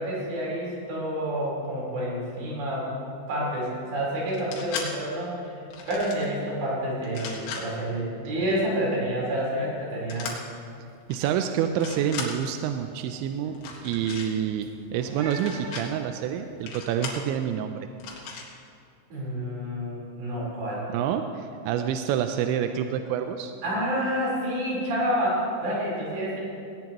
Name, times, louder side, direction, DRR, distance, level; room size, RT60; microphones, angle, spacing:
voice 1, 0.0-2.9 3.3-10.3 19.1-20.8 23.6-26.4, equal, 60° right, -5 dB, 6.3 m, -29 dB
sound 1, 4.3-4.9 5.7-6.3 7.0-7.6 10.1-10.4 11.1-11.3 11.7-12.3 13.5-14.3 15.2-15.8 16.7-17.2 18.0-18.5, left 6 dB, 80° left, 4.3 m, -36 dB
sound 2, 9.3-9.6 9.8-10.3 10.7-16.6, right 2 dB, 45° right, 5.1 m, -46 dB
voice 2, 11.1-13.5 13.8-17.9 20.9-23.5, right 9 dB, 80° right, 6 dB, 2.7 m, -28 dB
18.5 x 18.5 x 3.0 m, 2.4 s
omnidirectional pair, 5.6 m